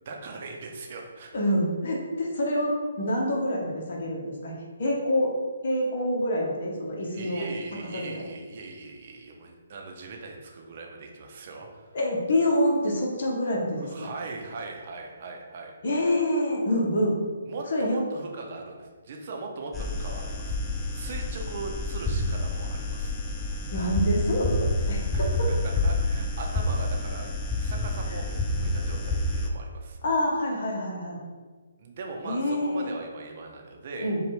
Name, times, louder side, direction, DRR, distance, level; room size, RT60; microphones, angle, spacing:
voice 1, 0.0-1.3 7.1-11.9 13.8-15.7 17.5-20.6 20.9-23.2 25.1-27.3 27.6-30.0 31.8-34.1, right 3 dB, 45° right, 1 dB, 0.7 m, -39 dB
voice 2, 1.3-4.5 4.8-5.3 5.6-7.4 7.9-8.2 11.9-14.1 15.8-17.2 17.7-18.0 23.7-25.5 30.0-31.2 32.2-33.0 34.0-34.2, left 1 dB, 60° left, -2 dB, 1.0 m, -26 dB
sound 1, 19.7-29.5, left 2 dB, 10° left, 0.4 m, -28 dB
5.0 x 2.4 x 3.1 m, 1.4 s
figure-of-eight pair, 145°, 0 cm